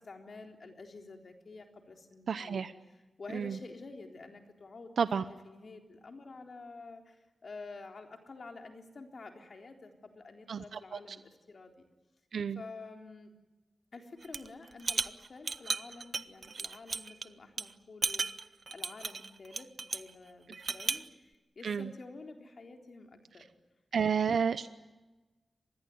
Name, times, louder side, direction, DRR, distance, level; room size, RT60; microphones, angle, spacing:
voice 1, 0.0-2.7 3.2-4.9 5.4-11.9 12.6-13.3 13.9-23.4, left 3 dB, 55° left, 4 dB, 3.8 m, -49 dB
voice 2, 2.3-2.7 3.3-3.6 5.0-5.2 10.5-11.2 12.3-12.6 21.6-21.9 23.9-24.7, right 6 dB, 85° right, 12 dB, 0.8 m, -31 dB
sound 1, 14.2-14.5 14.8-17.2 17.6-17.7 18.0-20.1 20.5-21.1, right 4 dB, 45° right, 0.8 m, -35 dB
25.5 x 20.5 x 9.5 m, 1.1 s
wide cardioid pair, 125°, 0 cm